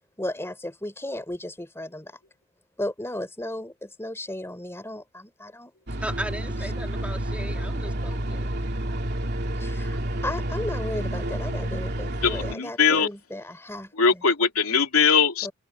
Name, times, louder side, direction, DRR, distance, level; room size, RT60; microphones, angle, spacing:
voice 1, 0.2-2.1 2.8-5.7 9.6-14.2 15.4-15.5, left 1 dB, 10° left, 3.4 m, -35 dB
sound 1, 5.9-12.5, right 1 dB, 50° right, 2.9 m, -29 dB
voice 2, 6.0-8.5, right 1 dB, 5° right, 2.3 m, -36 dB
voice 3, 12.2-13.1 14.0-15.5, left 5 dB, 85° left, 2.8 m, -21 dB
open air
head